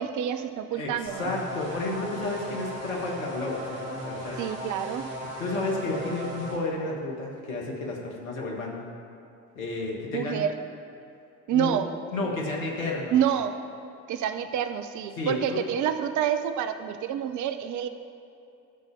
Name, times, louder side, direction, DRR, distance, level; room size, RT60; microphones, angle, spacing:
voice 1, 0.0-1.3 4.4-5.0 10.1-10.5 11.5-11.9 13.1-13.5 14.1-17.9, right 9 dB, 50° right, 9 dB, 0.6 m, -27 dB
voice 2, 0.7-4.4 5.4-8.9 9.5-10.5 11.5-11.8 12.1-13.2 15.1-15.6, left 2 dB, 80° left, -1 dB, 1.5 m, -31 dB
sound 1, 1.0-6.6, equal, 80° right, 2.0 m, -37 dB
12.0 x 4.0 x 7.1 m, 2.6 s
figure-of-eight pair, 55°, 40 cm